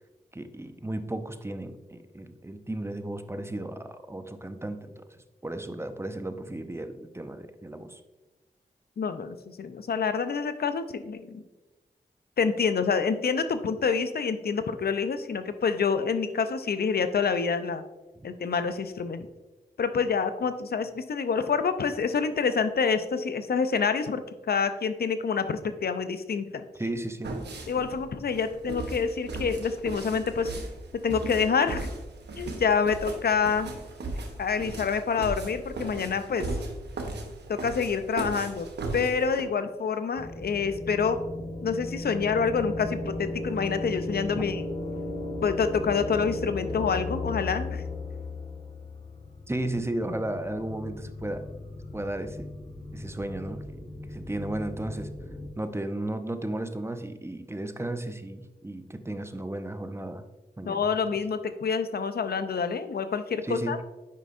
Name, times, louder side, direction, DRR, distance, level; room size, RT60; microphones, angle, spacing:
voice 1, 0.3-8.0 26.8-27.3 44.3-44.4 49.5-51.5 51.9-52.5 52.9-53.8 54.1-55.1 55.6-60.2 60.6-61.0 63.4-63.8, right 1 dB, 15° right, 9 dB, 0.7 m, -34 dB
voice 2, 9.0-11.4 12.4-17.8 18.2-19.3 19.8-24.2 24.5-26.6 27.7-30.5 31.0-31.9 32.4-33.7 34.4-36.4 37.5-38.7 38.9-41.2 41.6-44.6 45.4-47.8 60.7-63.8, left 5 dB, 65° left, 10 dB, 0.6 m, -27 dB
sound 1, 27.2-39.4, right 2 dB, 80° right, 0.9 m, -37 dB
sound 2, 40.2-55.5, left 2 dB, 40° left, 1.4 m, -36 dB
8.4 x 5.2 x 2.6 m, 1.1 s
cardioid pair, 40°, 17 cm